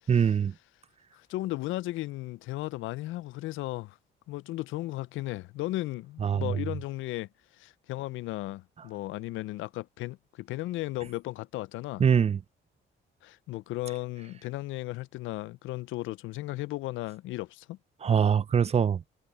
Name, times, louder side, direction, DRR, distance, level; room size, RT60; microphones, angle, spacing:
voice 1, 0.1-0.5 6.2-6.6 12.0-12.4 18.0-19.0, right 7 dB, 30° right, 0.5 m, -23 dB
voice 2, 1.1-4.0 4.3-7.3 7.6-12.0 13.2-17.8, left 18 dB, 85° left, 0.4 m, -35 dB
cardioid pair, 90°, 20 cm